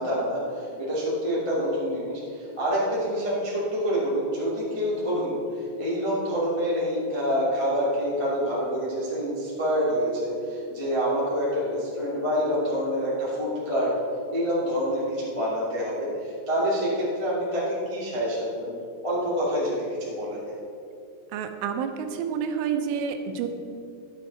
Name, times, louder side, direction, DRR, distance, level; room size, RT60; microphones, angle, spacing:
voice 1, 0.0-5.4 5.8-13.9 14.3-18.7 19.0-20.4, equal, 40° left, -8 dB, 0.4 m, -27 dB
voice 2, 21.3-23.5, right 7 dB, 90° right, 6 dB, 3.3 m, -29 dB
12.5 x 8.1 x 4.2 m, 2.4 s
omnidirectional pair, 5.5 m